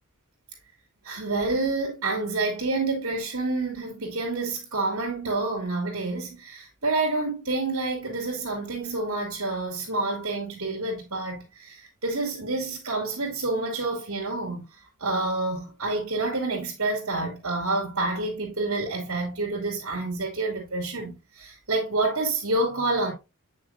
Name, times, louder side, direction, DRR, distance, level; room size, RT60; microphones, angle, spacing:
voice 1, 1.0-11.8 12.0-14.6 15.0-23.1, right 2 dB, 65° right, 2.6 m, -28 dB
8.7 x 6.1 x 2.5 m
head